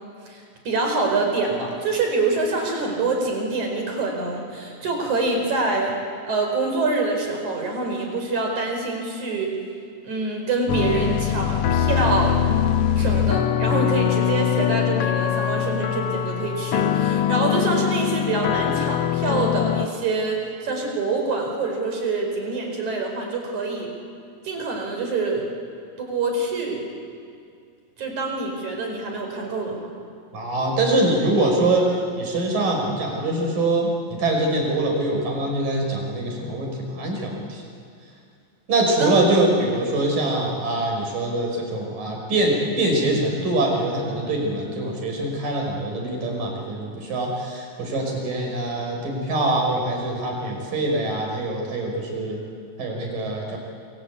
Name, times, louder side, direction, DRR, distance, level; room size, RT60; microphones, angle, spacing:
voice 1, 0.3-6.0 6.3-9.5 10.0-12.4 13.0-23.9 24.4-25.5 26.0-26.8 28.0-29.9 39.0-39.2, right 3 dB, 60° right, 2 dB, 6.1 m, -25 dB
sound 1, 10.7-19.9, left 10 dB, 80° left, 1.3 m, -22 dB
voice 2, 30.3-37.6 38.7-52.4 52.8-53.6, right 2 dB, 90° right, 1 dB, 7.2 m, -23 dB
28.0 x 25.0 x 8.5 m, 2.4 s
omnidirectional pair, 3.8 m